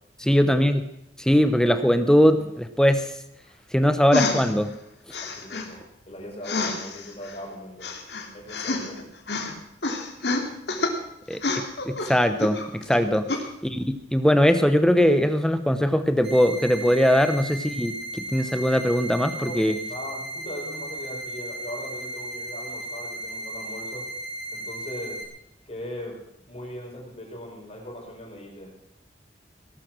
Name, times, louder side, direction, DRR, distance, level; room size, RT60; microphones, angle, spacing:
voice 1, 0.2-0.8 1.2-3.1 3.7-4.7 11.3-13.3 13.6-19.8, equal, 5° left, 9 dB, 0.9 m, -21 dB
sound 1, 4.1-4.5 5.1-5.7 6.4-7.3 7.8-9.0 9.3-9.5 9.8-10.9 11.3-12.9 13.3-13.4, left 3 dB, 70° left, 2.9 m, -28 dB
voice 2, 5.2-7.9 8.3-9.0 12.9-13.1 19.3-19.6 19.9-24.1 24.5-25.3 25.7-28.7, equal, 35° left, 0 dB, 5.3 m, -39 dB
sound 2, 16.2-25.2, right 1 dB, 35° right, 4.2 m, -35 dB
18.5 x 12.5 x 6.2 m, 0.80 s
head